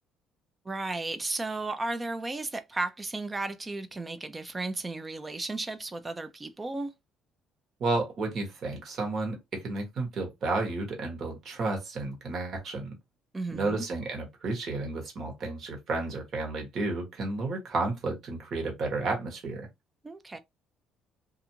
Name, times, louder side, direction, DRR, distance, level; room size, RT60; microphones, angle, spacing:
voice 1, 0.7-6.9 13.3-13.9 20.0-20.4, right 2 dB, 20° right, 0.4 m, -34 dB
voice 2, 7.8-12.9 13.5-19.7, right 3 dB, 50° right, 1.2 m, -32 dB
2.5 x 2.4 x 2.8 m
cardioid pair, 125°, 0 cm